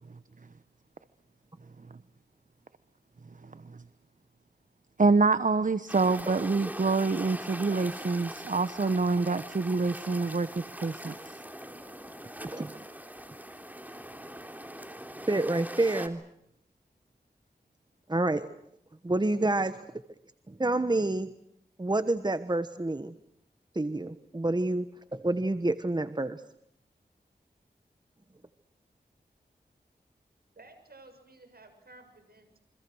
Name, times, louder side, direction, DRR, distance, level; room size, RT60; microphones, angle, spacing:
voice 1, 5.0-11.1, right 3 dB, 50° right, 13 dB, 1.1 m, -26 dB
sound 1, 5.9-16.1, equal, 10° right, 3.4 m, -42 dB
voice 2, 15.3-16.2 18.1-18.5 19.0-19.8 20.5-21.3 21.8-23.1 23.7-24.9 25.1-26.4, right 2 dB, 25° right, 11 dB, 1.2 m, -28 dB
voice 3, 30.5-32.6, right 2 dB, 65° right, 7 dB, 7.0 m, -54 dB
29.0 x 25.0 x 6.4 m, 0.75 s
cardioid pair, 45°, 17 cm